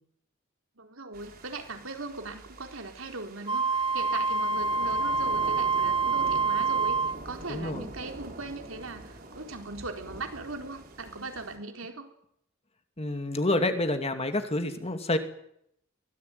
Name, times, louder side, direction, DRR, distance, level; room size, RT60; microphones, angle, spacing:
voice 1, 0.8-12.1, right 3 dB, 70° right, 4 dB, 4.3 m, -39 dB
sound 1, 1.1-11.6, right 2 dB, 45° right, 5.0 m, -45 dB
Wind instrument woodwind instrument, 3.5-7.2, right 4 dB, 25° right, 1.9 m, -26 dB
voice 2, 7.5-7.9 13.0-15.2, left 1 dB, 30° left, 7 dB, 2.5 m, -28 dB
23.5 x 18.5 x 9.4 m, 0.73 s
head